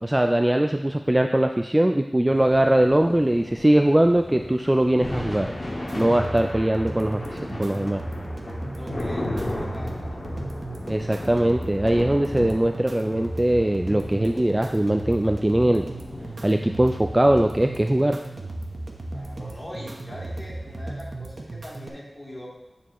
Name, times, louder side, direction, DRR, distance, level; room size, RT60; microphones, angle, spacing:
voice 1, 0.0-5.5 6.0-8.0 10.9-15.9 16.4-18.2, right 1 dB, 15° right, 5 dB, 0.3 m, -21 dB
sound 1, 2.3-20.8, left 1 dB, 40° left, 2.0 m, -36 dB
sound 2, 5.9-21.9, right 2 dB, 60° right, 1.0 m, -36 dB
voice 2, 8.7-10.2 19.1-22.5, equal, 15° left, -7 dB, 3.1 m, -42 dB
8.7 x 6.9 x 3.1 m, 0.95 s
wide cardioid pair, 85°, 0 cm